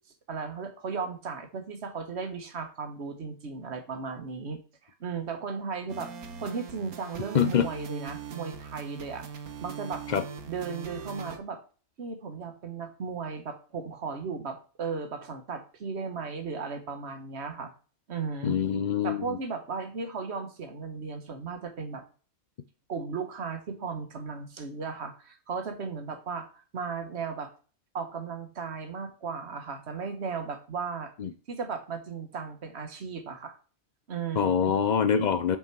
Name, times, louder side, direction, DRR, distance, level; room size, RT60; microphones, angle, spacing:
voice 1, 0.3-6.1 6.4-9.2 9.6-10.0 10.5-11.6 12.0-17.7 18.1-18.6 19.0-22.0 22.9-27.5 27.9-31.1 31.5-33.6 34.1-34.7, right 5 dB, 50° right, 1.5 m, -36 dB
sound 1, 5.9-11.4, right 6 dB, 80° right, 1.5 m, -41 dB
voice 2, 7.3-7.7 10.1-10.2 18.4-19.4 31.2-31.3 34.4-35.6, left 7 dB, 80° left, 0.4 m, -25 dB
7.1 x 5.8 x 4.6 m
omnidirectional pair, 1.5 m